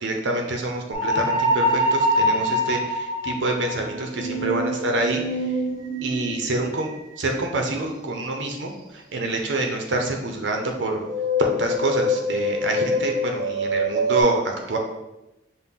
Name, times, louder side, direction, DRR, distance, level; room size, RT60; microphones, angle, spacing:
voice 1, 0.0-5.2 6.0-6.9 7.2-8.7 9.1-11.0 11.4-14.8, right 2 dB, 75° right, 3 dB, 0.6 m, -26 dB
sound 1, 0.9-6.6 11.1-14.2, left 1 dB, 20° right, 0.8 m, -24 dB
5.7 x 2.1 x 3.6 m, 0.94 s
head